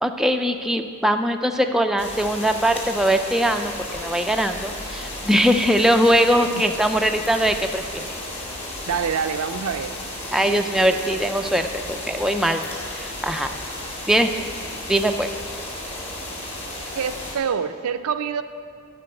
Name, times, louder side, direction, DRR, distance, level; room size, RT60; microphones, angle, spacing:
voice 1, 0.0-8.1 10.3-12.6 12.9-13.5 14.1-14.5 14.9-15.3, equal, ahead, 5 dB, 0.3 m, -21 dB
sound 1, 2.0-17.4, left 1 dB, 30° left, 2.1 m, -34 dB
voice 2, 8.9-10.0 17.0-18.4, right 6 dB, 75° right, 10 dB, 0.5 m, -26 dB
12.0 x 4.6 x 7.6 m, 2.2 s
head